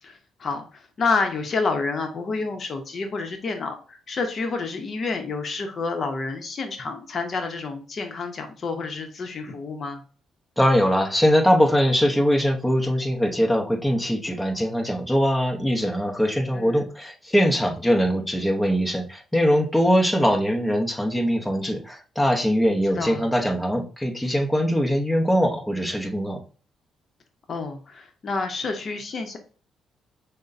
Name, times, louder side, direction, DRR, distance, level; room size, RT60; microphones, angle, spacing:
voice 1, 0.0-10.0 16.5-16.8 23.0-23.3 27.5-29.4, left 4 dB, 45° left, 5 dB, 0.8 m, -29 dB
voice 2, 10.6-26.4, equal, 5° left, 2 dB, 0.8 m, -22 dB
6.1 x 2.1 x 2.6 m, 0.38 s
cardioid pair, 90°, 0 cm